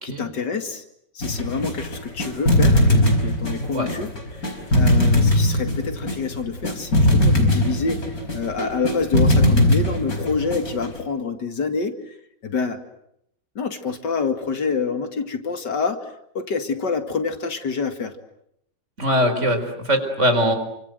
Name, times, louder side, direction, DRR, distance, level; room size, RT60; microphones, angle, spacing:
voice 1, 0.0-0.8 1.1-4.1 4.4-4.5 4.8-12.2 12.4-12.8 13.6-16.1 16.3-18.1, left 5 dB, 75° left, 7 dB, 2.7 m, -27 dB
sound 1, 1.2-11.0, left 1 dB, 55° left, 5.3 m, -20 dB
voice 2, 19.0-20.5, equal, 40° right, 6 dB, 4.8 m, -21 dB
29.0 x 25.0 x 7.9 m, 0.76 s
omnidirectional pair, 1.9 m